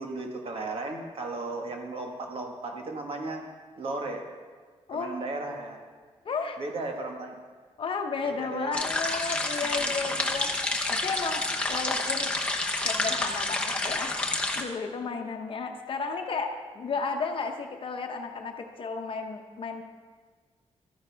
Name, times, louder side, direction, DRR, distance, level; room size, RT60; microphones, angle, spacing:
voice 1, 0.0-3.4 3.8-4.2 4.9-5.8 6.6-7.4 8.2-8.7 9.6-10.3, right 2 dB, 55° right, 2 dB, 1.4 m, -35 dB
voice 2, 6.2-6.6 7.8-12.3 12.8-14.1 14.6-19.8, left 4 dB, 50° left, 4 dB, 0.9 m, -33 dB
sound 1, 8.7-14.6, left 2 dB, 10° left, 0.9 m, -29 dB
12.5 x 9.6 x 3.4 m, 1.5 s
wide cardioid pair, 150°, 11 cm